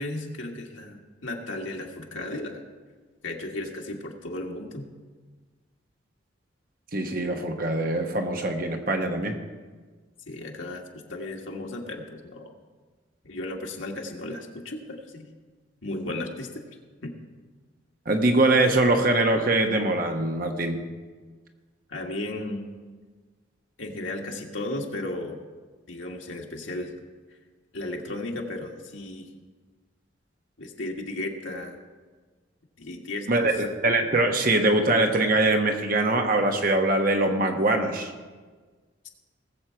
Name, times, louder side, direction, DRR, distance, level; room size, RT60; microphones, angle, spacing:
voice 1, 0.0-2.6 3.2-4.8 10.3-10.8 11.1-12.5 13.2-15.2 15.8-16.6 17.0-17.1 21.9-22.7 23.8-25.4 25.9-26.9 27.7-29.3 30.6-31.8 32.8-33.6, left 2 dB, 90° left, 0 dB, 1.7 m, -35 dB
voice 2, 6.9-9.4 18.1-20.8 33.3-38.1, right 2 dB, 45° right, 4 dB, 1.1 m, -23 dB
19.5 x 7.4 x 4.6 m, 1.4 s
head